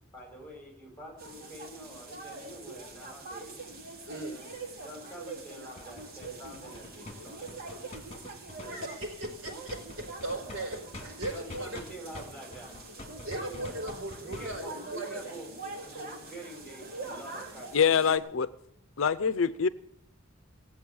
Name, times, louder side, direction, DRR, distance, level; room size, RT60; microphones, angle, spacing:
voice 1, 0.1-3.6 4.3-4.5 4.8-7.9 8.6-8.8 11.3-12.7 13.4-13.7 14.2-15.5 15.8-17.7, right 1 dB, 5° left, 0 dB, 5.3 m, -46 dB
sound 1, 1.2-18.2, right 3 dB, 50° right, 2.6 m, -44 dB
voice 2, 4.0-4.4 8.7-9.8 10.2-10.8 11.0-11.8 13.2-15.2, right 1 dB, 80° right, 2 dB, 5.0 m, -37 dB
sound 2, 5.8-11.9 12.2-14.6, left 2 dB, 30° left, 2.1 m, -45 dB
voice 3, 17.7-18.5 19.0-19.7, left 6 dB, 75° left, 16 dB, 0.6 m, -25 dB
17.5 x 7.8 x 8.6 m, 0.76 s
head